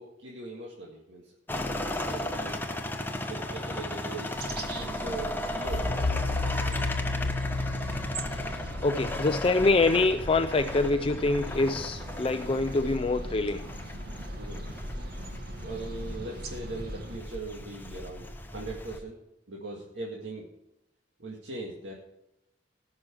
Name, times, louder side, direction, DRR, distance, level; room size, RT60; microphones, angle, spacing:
voice 1, 0.0-1.4 2.0-2.6 3.3-4.3 4.7-5.9 14.4-14.7 15.6-19.2 19.5-20.5 21.2-21.9, right 2 dB, 80° right, 1.9 m, -40 dB
sound 1, 1.5-19.0, left 1 dB, 10° left, 1.0 m, -36 dB
sound 2, 4.3-17.2, right 1 dB, 60° right, 1.6 m, -41 dB
sound 3, 5.6-10.5, left 2 dB, 80° left, 1.1 m, -32 dB
voice 2, 8.3-13.7, left 3 dB, 30° left, 0.4 m, -25 dB
18.0 x 6.3 x 4.5 m
head